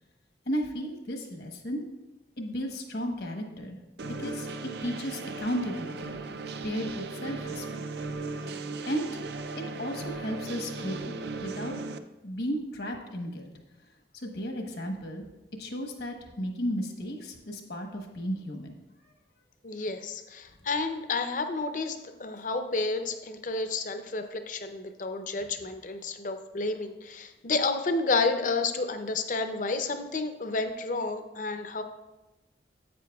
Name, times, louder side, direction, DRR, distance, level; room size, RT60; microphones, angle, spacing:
voice 1, 0.5-1.8 2.4-3.8 4.0-4.5 4.8-6.2 6.6-7.8 8.9-9.2 9.8-11.1 11.4-11.7 12.2-13.5 14.2-15.3 15.6-18.7, equal, 70° left, 3 dB, 1.1 m, -34 dB
sound 1, 4.0-12.0, right 3 dB, 65° right, 0.4 m, -37 dB
voice 2, 19.6-31.8, left 3 dB, 45° left, 8 dB, 0.6 m, -30 dB
10.0 x 8.3 x 2.3 m, 1.0 s
head